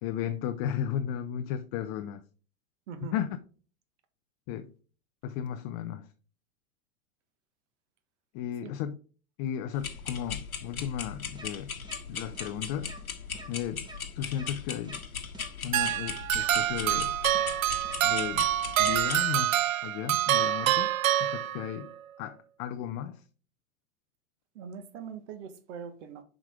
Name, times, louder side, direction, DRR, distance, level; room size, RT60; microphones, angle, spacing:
voice 1, 0.0-2.2 3.1-3.3 4.5-4.7 5.2-6.1 8.3-9.0 9.4-11.7 12.1-13.0 13.5-13.8 14.2-15.0 15.6-17.2 18.0-18.5 18.8-20.9 21.2-21.9 22.2-23.2, left 10 dB, 25° left, 0.4 m, -34 dB
sound 1, 9.7-19.2, left 6 dB, 90° left, 1.0 m, -38 dB
sound 2, 11.3-11.5 11.8-12.0 12.3-12.5 12.8-13.0 13.3-13.5 13.8-14.0 14.3-14.5 14.8-15.0 15.3-15.5 15.8-16.0 16.3-16.5 16.8-17.0 17.3-17.5 17.8-18.0 18.3-18.5 18.8-19.0, right 1 dB, 10° right, 1.2 m, -46 dB
sound 3, 15.7-21.9, right 12 dB, 70° right, 0.5 m, -27 dB
voice 2, 24.5-26.2, right 7 dB, 55° right, 1.4 m, -42 dB
7.1 x 5.1 x 3.5 m
figure-of-eight pair, 100°, 42 cm